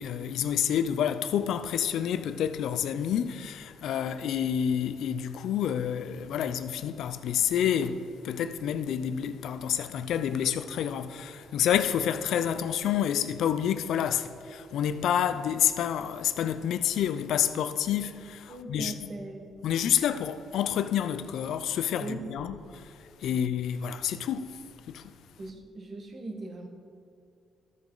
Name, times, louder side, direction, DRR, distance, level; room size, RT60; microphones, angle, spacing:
voice 1, 0.0-18.9 19.6-24.6 24.9-25.1, left 9 dB, 75° left, 0.5 m, -29 dB
voice 2, 18.5-19.4 22.0-22.5 23.3-23.4 25.4-26.7, right 2 dB, 45° right, 1.5 m, -39 dB
13.0 x 7.2 x 3.9 m
cardioid pair, 90°, 0 cm